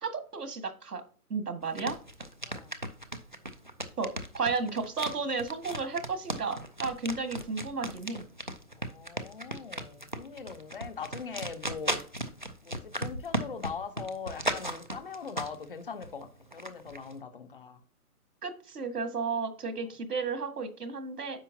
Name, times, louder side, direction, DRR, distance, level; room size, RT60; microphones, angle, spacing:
voice 1, 0.0-1.0 1.3-2.0 4.0-8.2 18.4-21.4, right 4 dB, 80° right, 9 dB, 1.9 m, -33 dB
sound 1, 1.6-15.7 16.0-17.1, right 1 dB, 35° right, 0.5 m, -36 dB
voice 2, 8.7-12.0 12.6-17.8, left 5 dB, 35° left, 9 dB, 0.9 m, -41 dB
10.0 x 6.9 x 2.8 m, 0.41 s
hypercardioid pair, 175°, 46 cm